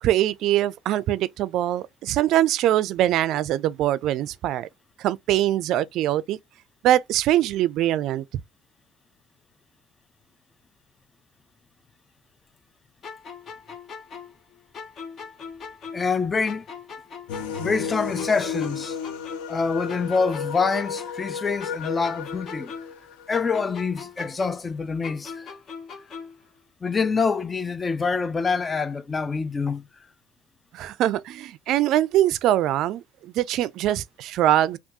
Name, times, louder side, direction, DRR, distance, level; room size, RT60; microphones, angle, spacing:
voice 1, 0.0-4.7 5.0-6.4 6.8-8.2 30.7-34.8, right 13 dB, 65° right, 0.3 m, -23 dB
sound 1, 13.0-16.2 16.5-19.6 19.9-23.0 23.3-26.5, left 5 dB, 45° left, 0.8 m, -40 dB
voice 2, 15.9-16.7 17.6-19.0 19.5-22.7 23.3-25.5 26.8-29.8, left 4 dB, 25° left, 0.3 m, -26 dB
sound 2, 17.3-23.4, left 6 dB, 80° left, 0.6 m, -33 dB
3.4 x 2.3 x 2.7 m
supercardioid pair, 80°, 0 cm